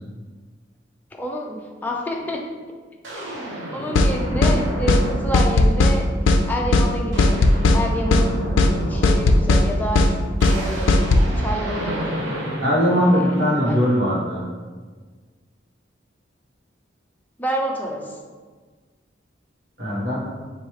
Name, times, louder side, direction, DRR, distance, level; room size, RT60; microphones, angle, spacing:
voice 1, 1.1-2.4 3.1-6.1 6.4-8.5 8.9-10.1 10.5-12.3 13.6-13.8 17.4-18.2, equal, 10° left, 0 dB, 0.4 m, -28 dB
sound 1, 2.2-2.3 3.0-5.9 6.4-6.6 6.9-14.1, right 1 dB, 80° right, 0.8 m, -32 dB
sound 2, 3.9-4.1 4.4-4.6 4.9-5.0 5.3-6.0 6.3-6.4 6.7-6.9 7.2-7.8 8.1-8.3 8.6-8.7 9.0-9.6 9.9-10.1 10.4-10.6 10.9-11.3, left 2 dB, 90° left, 0.4 m, -15 dB
voice 2, 12.6-14.4 19.8-20.2, equal, 60° right, -7 dB, 1.4 m, -20 dB
3.1 x 2.7 x 4.4 m, 1.4 s
head